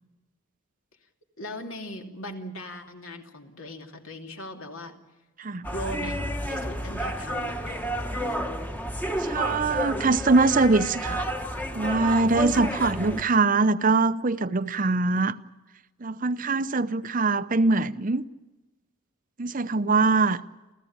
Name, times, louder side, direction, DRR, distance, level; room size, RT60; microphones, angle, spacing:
voice 1, 1.4-5.0 5.7-7.9, equal, 70° left, 3.0 m, -39 dB
sound 1, 5.6-13.2, equal, 10° left, 1.2 m, -31 dB
voice 2, 9.2-11.3 11.7-15.4 16.0-18.2 19.4-20.4, right 3 dB, 40° right, 0.7 m, -23 dB
29.0 x 15.0 x 8.8 m
head